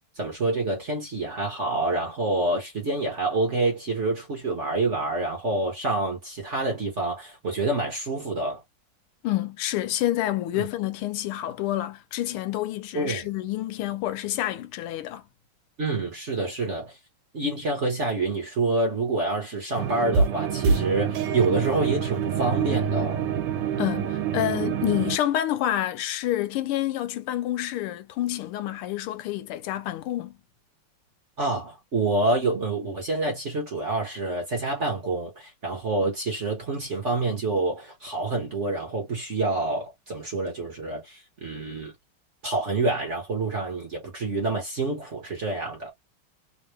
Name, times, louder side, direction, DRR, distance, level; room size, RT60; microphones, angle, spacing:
voice 1, 0.2-8.6 10.5-10.7 12.9-13.3 15.8-17.0 17.3-23.2 31.4-41.9 42.4-45.9, right 2 dB, 40° right, 1.1 m, -27 dB
voice 2, 9.2-15.2 23.8-30.4, left 13 dB, 80° left, 1.5 m, -28 dB
sound 1, 19.8-25.2, right 6 dB, 85° right, 1.6 m, -26 dB
3.5 x 2.6 x 3.2 m
omnidirectional pair, 2.4 m